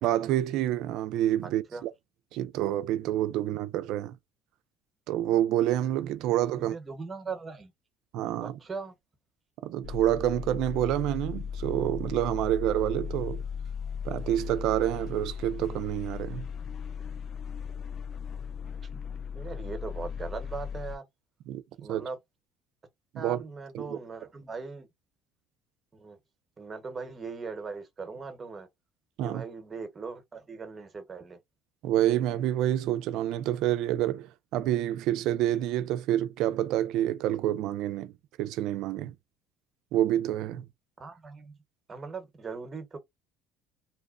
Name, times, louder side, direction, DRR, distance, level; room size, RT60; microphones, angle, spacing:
voice 1, 0.0-1.9 2.3-4.2 5.1-6.8 8.1-8.6 9.6-13.4 14.0-16.5 21.5-22.0 23.1-23.4 23.7-24.0 29.2-29.4 31.8-38.1 38.4-39.1 39.9-40.7, right 12 dB, 75° right, 0.4 m, -28 dB
voice 2, 6.6-7.7 8.4-8.9 18.9-19.0 19.3-21.0 21.8-22.2 23.1-24.9 25.9-26.2 26.6-28.7 29.2-31.4 41.0-41.5 41.9-43.0, right 4 dB, 30° right, 1.0 m, -39 dB
sound 1, 9.8-21.0, left 7 dB, 50° left, 0.3 m, -37 dB
2.8 x 2.1 x 2.4 m
supercardioid pair, 95°, 0 cm